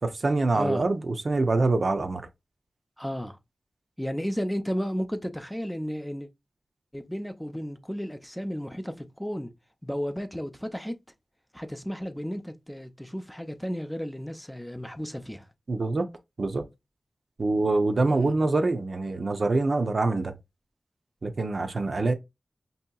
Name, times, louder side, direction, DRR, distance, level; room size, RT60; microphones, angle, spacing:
voice 1, 0.0-2.3 15.7-16.1 16.4-16.6 17.4-20.3 21.2-22.1, right 2 dB, 60° right, 0.6 m, -25 dB
voice 2, 0.5-0.8 3.0-3.4 4.0-6.3 6.9-9.5 9.8-10.9 11.5-15.5 18.1-18.3, equal, 5° left, 0.5 m, -33 dB
5.3 x 2.8 x 2.2 m
wide cardioid pair, 75°, 0 cm